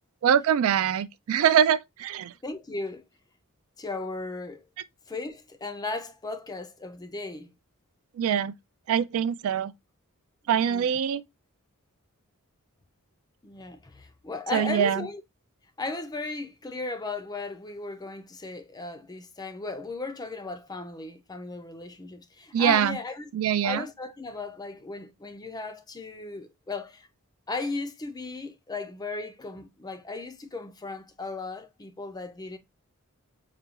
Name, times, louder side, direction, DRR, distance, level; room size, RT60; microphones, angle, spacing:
voice 1, 0.2-2.3 8.2-8.5 8.9-9.7 10.5-11.2 14.5-15.1 22.5-23.0 23.3-23.9, right 8 dB, 65° right, 0.3 m, -23 dB
voice 2, 2.4-3.0 3.8-4.6 5.1-7.5 10.5-10.9 13.4-15.2 15.8-23.3 23.6-27.1 27.5-32.6, left 3 dB, 20° left, 0.4 m, -36 dB
4.8 x 2.2 x 2.8 m
head